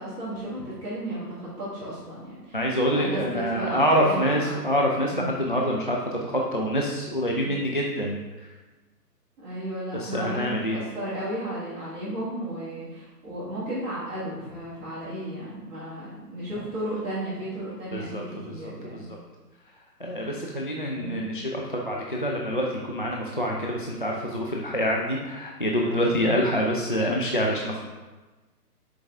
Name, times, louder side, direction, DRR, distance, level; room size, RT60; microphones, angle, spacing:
voice 1, 0.0-4.7 5.0-5.4 9.4-19.1 20.2-20.3 20.9-21.4 25.8-26.5, right 1 dB, 15° right, -12 dB, 1.9 m, -34 dB
voice 2, 2.5-8.2 9.9-10.8 17.9-19.2 20.0-27.8, equal, 35° left, -2 dB, 0.4 m, -26 dB
7.2 x 4.6 x 3.5 m, 1.2 s
figure-of-eight pair, 145°, 48 cm